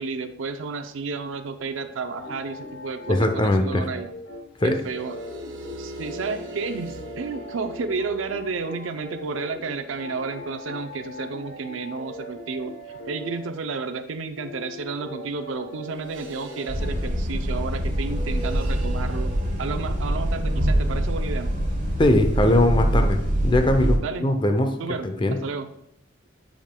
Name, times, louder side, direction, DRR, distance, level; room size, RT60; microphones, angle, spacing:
voice 1, 0.0-4.1 4.6-5.2 5.8-12.7 13.0-19.3 19.6-21.5 24.0-24.3 24.8-25.7, right 4 dB, 85° right, 8 dB, 0.5 m, -32 dB
sound 1, 2.2-13.5 14.1-17.0, left 1 dB, 70° left, 0.8 m, -40 dB
voice 2, 3.1-3.9 4.6-4.8 22.0-24.8 25.0-25.4, left 1 dB, 25° left, 6 dB, 0.6 m, -21 dB
sound 2, 4.7-10.2 16.0-20.6 22.2-22.7, equal, 65° right, 1.5 m, -42 dB
sound 3, 16.7-24.0, right 1 dB, 45° right, 2.6 m, -24 dB
10.5 x 5.1 x 2.2 m, 0.81 s
head